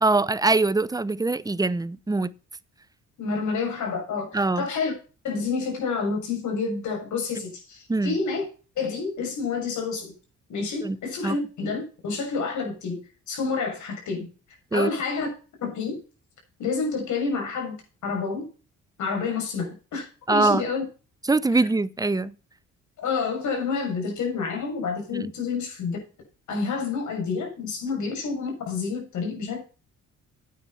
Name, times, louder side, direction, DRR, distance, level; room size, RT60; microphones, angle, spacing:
voice 1, 0.0-2.3 4.3-4.7 7.9-8.2 10.8-11.0 11.2-11.4 14.7-14.9 20.3-20.7 21.3-22.3 25.1-25.3, right 3 dB, 10° right, 0.7 m, -23 dB
voice 2, 3.2-4.9 5.2-8.4 8.8-10.1 10.5-14.3 14.7-15.3 15.6-16.0 16.6-17.8 18.0-18.5 19.0-20.8 21.6-21.7 23.0-26.0 26.5-29.6, left 4 dB, 75° left, 6.9 m, -29 dB
9.5 x 9.1 x 5.7 m
cardioid pair, 90°, 30 cm